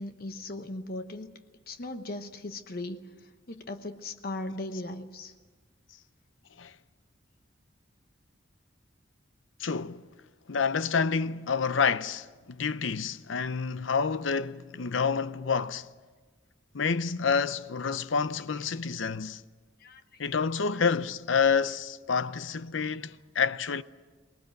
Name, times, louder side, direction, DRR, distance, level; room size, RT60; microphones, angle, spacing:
voice 1, 0.0-1.3 1.7-5.3 18.5-18.6 19.8-20.2 20.6-20.7, left 2 dB, 50° left, 1.0 m, -38 dB
voice 2, 9.6-10.0 10.5-15.9 16.7-19.4 20.2-23.8, left 5 dB, 85° left, 0.7 m, -28 dB
24.5 x 19.0 x 7.8 m
head